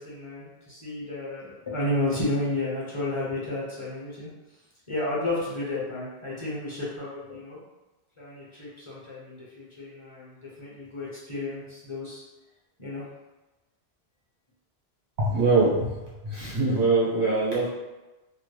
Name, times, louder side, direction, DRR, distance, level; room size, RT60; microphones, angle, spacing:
voice 1, 0.0-4.3 4.9-7.6 8.2-12.2 12.8-13.0, left 1 dB, 30° left, -7 dB, 0.8 m, -32 dB
voice 2, 15.2-15.9 16.2-17.7, right 3 dB, 85° right, -7 dB, 1.5 m, -23 dB
3.3 x 2.1 x 3.2 m, 1.1 s
omnidirectional pair, 1.1 m